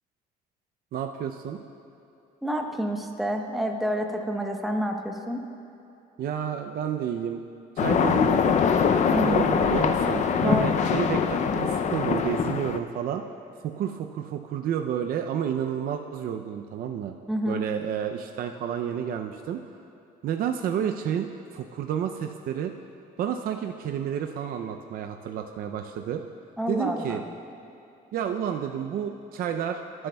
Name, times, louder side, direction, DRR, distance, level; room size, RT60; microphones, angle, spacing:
voice 1, 0.9-1.6 6.2-7.4 7.8-8.6 9.2-13.3 13.6-17.1 17.5-19.6 20.2-22.7 23.2-26.2 26.7-27.2 28.1-30.1, right 9 dB, 60° right, 5 dB, 0.5 m, -30 dB
voice 2, 2.4-5.4 9.1-9.5 10.4-10.9 17.3-17.6 26.6-27.2, equal, ahead, 2 dB, 0.9 m, -28 dB
sound 1, 7.8-12.8, left 6 dB, 45° left, 0.5 m, -23 dB
20.5 x 7.7 x 2.3 m, 2.8 s
cardioid pair, 110°, 17 cm